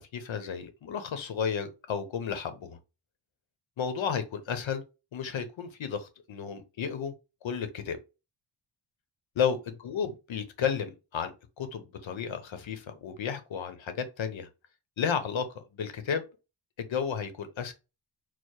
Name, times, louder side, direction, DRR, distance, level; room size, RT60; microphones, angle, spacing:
voice 1, 0.0-2.8 3.8-4.8 5.1-7.1 7.4-8.0 9.4-14.5 15.0-16.2 16.8-17.7, left 7 dB, 75° left, 0.7 m, -33 dB
4.5 x 2.0 x 4.5 m
wide cardioid pair, 155°, 46 cm